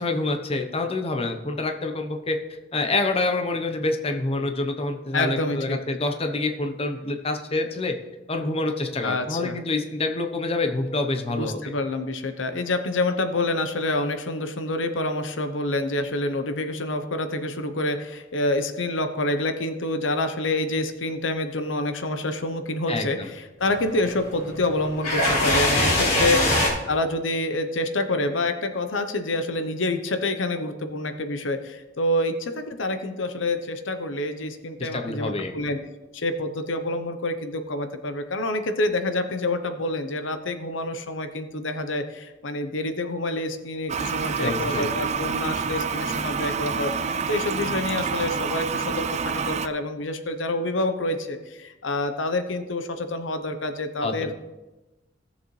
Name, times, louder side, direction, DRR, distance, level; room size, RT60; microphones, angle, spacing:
voice 1, 0.0-2.4 2.7-7.9 8.3-11.6 22.9-23.3 26.0-26.3 34.8-35.5 44.4-44.9 54.0-54.3, left 2 dB, 30° left, 5 dB, 0.8 m, -27 dB
voice 2, 5.1-5.8 9.0-9.6 11.3-26.4 26.9-35.8 36.1-54.3, left 2 dB, 90° left, 8 dB, 0.8 m, -27 dB
sound 1, 23.6-26.7, left 1 dB, 55° left, 4.0 m, -23 dB
Toilet flush, 43.9-49.7, right 5 dB, 35° right, 0.4 m, -28 dB
16.5 x 7.0 x 3.2 m, 1.1 s
head